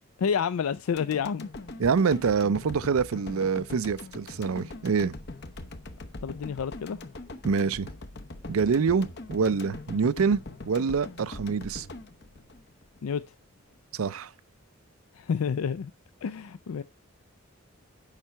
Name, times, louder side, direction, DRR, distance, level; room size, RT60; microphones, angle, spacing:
voice 1, 0.2-1.5 6.2-7.0 13.0-13.2 15.1-15.9 16.2-16.8, left 6 dB, 85° left, 0.4 m, -29 dB
sound 1, 1.0-13.2 13.6-13.7, left 2 dB, 50° left, 0.9 m, -42 dB
voice 2, 1.8-5.1 7.4-7.9 8.5-10.4 10.7-11.9 13.9-14.3, right 5 dB, 85° right, 0.5 m, -25 dB
8.9 x 5.8 x 4.5 m
head